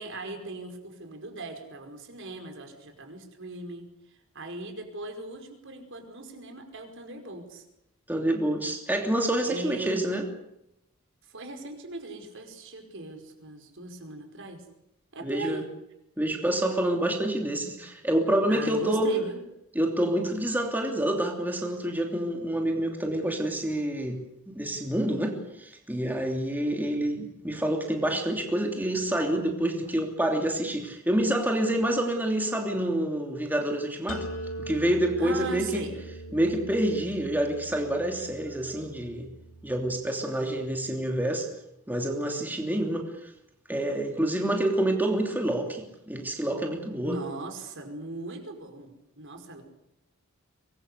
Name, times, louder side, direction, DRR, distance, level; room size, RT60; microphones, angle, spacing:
voice 1, 0.0-7.7 9.5-10.0 11.2-14.6 15.1-15.7 18.5-19.4 35.2-36.0 47.0-49.6, right 2 dB, 65° right, 4 dB, 5.2 m, -39 dB
voice 2, 8.1-10.2 15.2-15.6 16.2-19.1 19.7-24.2 24.5-34.3 34.6-35.9 36.3-39.3 39.6-41.5 41.9-43.1 43.7-47.1, right 1 dB, 10° right, 2 dB, 3.0 m, -27 dB
sound 1, 34.1-39.9, right 1 dB, 75° left, 2.9 m, -41 dB
24.5 x 21.5 x 8.2 m, 0.83 s
head